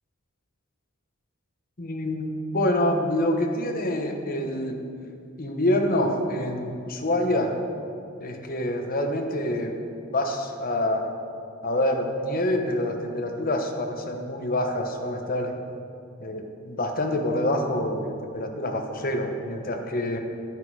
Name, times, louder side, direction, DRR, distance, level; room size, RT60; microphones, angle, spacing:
voice 1, 1.8-4.8 5.4-7.5 8.2-9.8 10.1-11.1 11.6-15.5 16.2-20.2, left 1 dB, 45° left, 4 dB, 1.1 m, -26 dB
10.0 x 10.0 x 4.8 m, 2.5 s
head